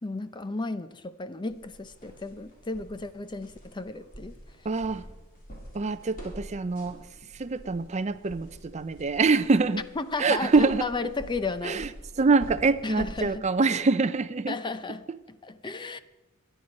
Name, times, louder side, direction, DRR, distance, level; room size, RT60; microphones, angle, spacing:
voice 1, 0.0-4.7 10.0-11.9 12.8-13.5 14.5-16.0, left 3 dB, 20° left, 0.6 m, -34 dB
sound 1, 1.5-13.3, equal, 40° left, 3.7 m, -47 dB
voice 2, 4.7-5.1 5.7-7.0 7.4-9.8 10.2-10.9 11.6-11.9 12.2-14.6, right 4 dB, 30° right, 0.5 m, -25 dB
22.5 x 10.0 x 5.3 m
head